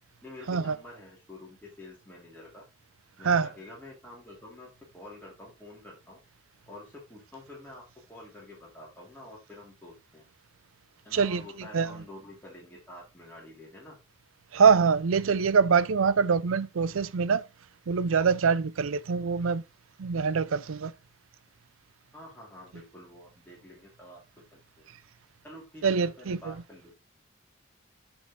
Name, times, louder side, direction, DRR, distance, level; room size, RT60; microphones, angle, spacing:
voice 1, 0.2-2.6 3.2-6.2 6.7-10.2 11.0-14.0 22.1-24.2 24.5-24.8 25.4-27.0, left 1 dB, 10° left, 2.8 m, -48 dB
voice 2, 11.1-12.0 14.5-17.4 17.9-19.6 20.0-20.9 25.8-26.5, right 5 dB, 85° right, 0.5 m, -24 dB
6.2 x 6.2 x 3.6 m
head